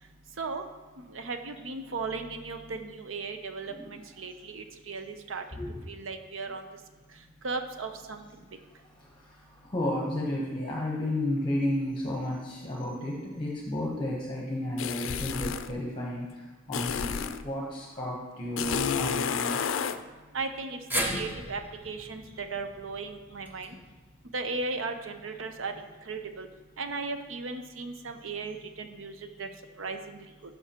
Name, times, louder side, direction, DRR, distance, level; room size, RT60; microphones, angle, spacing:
voice 1, 1.1-5.4 5.9-6.6 7.4-8.2 20.3-20.8 21.1-21.6 21.8-23.7 24.3-25.7 26.1-26.5 26.8-29.5 29.8-30.0, right 4 dB, 80° right, 7 dB, 0.7 m, -36 dB
voice 2, 5.5-5.8 8.2-8.3 9.0-9.1 9.6-16.3 16.7-19.8 21.0-21.2 22.3-22.4, left 1 dB, 25° left, -3 dB, 1.0 m, -32 dB
sound 1, 14.8-15.7 16.7-17.4 18.6-20.0, left 7 dB, 75° left, 0.4 m, -30 dB
sound 2, 20.9-25.2 25.5-25.6 26.8-26.9, equal, 10° right, 0.7 m, -37 dB
13.0 x 5.7 x 2.9 m, 1.2 s
head